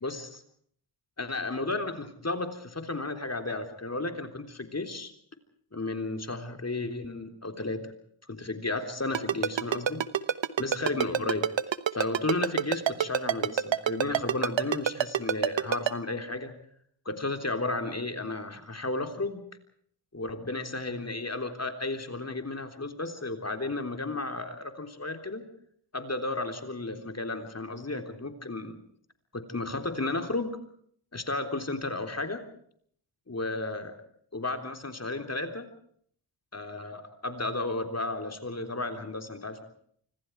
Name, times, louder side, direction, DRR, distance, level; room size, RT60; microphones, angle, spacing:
voice 1, 0.0-0.4 1.2-5.1 5.7-7.8 8.3-10.0 10.6-11.5 11.9-16.5 17.1-19.4 20.1-25.4 25.9-28.8 29.3-30.6 31.1-32.4 33.3-34.0 34.3-35.7 36.5-39.6, left 2 dB, 35° left, 6 dB, 3.6 m, -33 dB
Ringtone, 9.1-15.9, right 9 dB, 70° right, 1.2 m, -25 dB
26.5 x 25.0 x 4.7 m, 0.62 s
cardioid pair, 55°, 46 cm